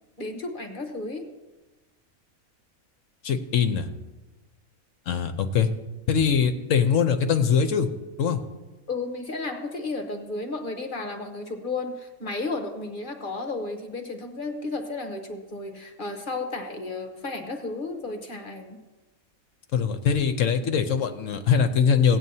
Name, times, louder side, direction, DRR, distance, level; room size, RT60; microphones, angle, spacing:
voice 1, 0.2-1.3 8.9-18.8, left 3 dB, 40° left, 4 dB, 1.0 m, -33 dB
voice 2, 3.2-3.9 5.1-5.7 6.1-7.9 8.2-8.4 19.7-22.2, left 7 dB, 65° left, 8 dB, 1.0 m, -22 dB
17.5 x 9.1 x 2.8 m, 1.1 s
omnidirectional pair, 1.5 m